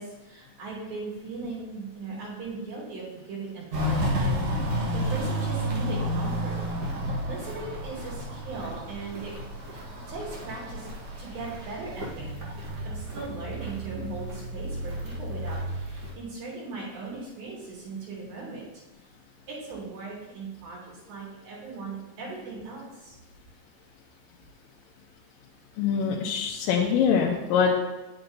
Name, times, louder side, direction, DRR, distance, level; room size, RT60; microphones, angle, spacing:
voice 1, 0.0-6.6 6.9-9.3 9.7-10.9 11.2-12.5 12.8-18.6 19.5-23.2, right 4 dB, 80° right, -6 dB, 5.3 m, -39 dB
Walk footsteps, 3.7-16.1, equal, 50° right, 1.7 m, -31 dB
voice 2, 25.8-27.7, left 7 dB, 80° left, -1 dB, 2.5 m, -24 dB
9.4 x 8.8 x 2.7 m, 1.1 s
omnidirectional pair, 4.2 m